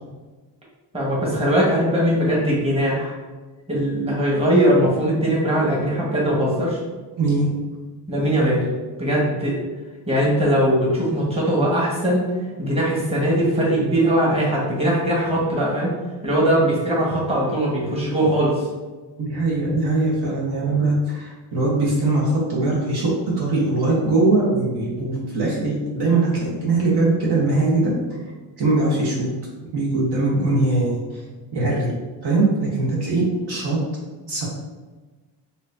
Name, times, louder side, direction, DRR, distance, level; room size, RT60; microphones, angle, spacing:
voice 1, 0.9-3.1 3.7-6.8 8.1-8.6 9.0-9.6 10.1-12.3 12.6-15.9 16.2-18.7, right 1 dB, 10° right, -5 dB, 1.3 m, -20 dB
voice 2, 7.2-7.5 19.2-27.9 28.6-29.3 29.7-31.2 31.5-31.9 32.2-33.8 34.3-34.4, right 2 dB, 55° right, -4 dB, 1.1 m, -21 dB
4.1 x 2.7 x 2.6 m, 1.3 s
supercardioid pair, 70°, 48 cm